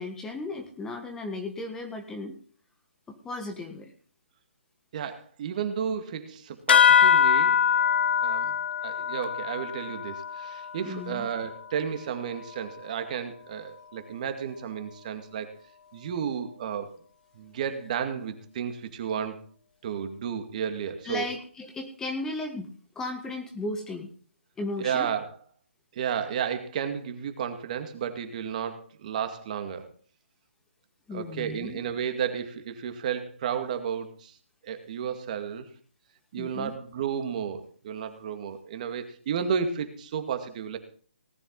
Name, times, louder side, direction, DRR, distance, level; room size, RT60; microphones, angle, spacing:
voice 1, 0.0-2.3 3.1-3.9 10.9-11.3 21.0-24.1 24.6-25.1 31.1-31.8 36.3-36.7, left 2 dB, 10° left, 4 dB, 1.5 m, -35 dB
voice 2, 4.9-7.6 8.2-8.6 8.8-15.5 15.9-16.9 17.3-19.4 19.8-21.3 24.8-25.3 25.9-29.9 31.1-34.4 34.6-35.7 36.3-40.8, right 7 dB, 40° right, 7 dB, 2.1 m, -32 dB
sound 1, 6.7-11.6, left 8 dB, 60° left, 1.3 m, -23 dB
18.5 x 10.0 x 4.0 m, 0.43 s
hypercardioid pair, 150°, 6 cm